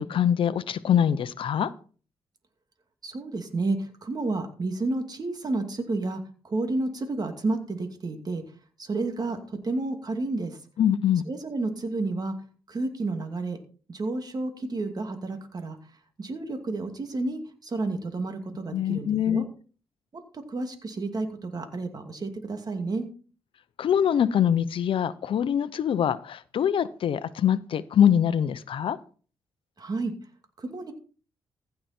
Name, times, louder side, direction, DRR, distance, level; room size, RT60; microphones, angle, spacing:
voice 1, 0.0-1.7 10.8-11.2 18.7-19.5 23.8-29.0, left 9 dB, 70° left, 15 dB, 0.8 m, -24 dB
voice 2, 3.0-8.4 8.8-10.6 11.3-12.3 12.7-13.6 13.9-15.8 16.2-19.4 20.3-23.1 29.8-30.1 30.6-30.9, right 2 dB, 45° right, 6 dB, 2.5 m, -31 dB
15.5 x 6.9 x 4.4 m, 0.39 s
supercardioid pair, 55°, 9 cm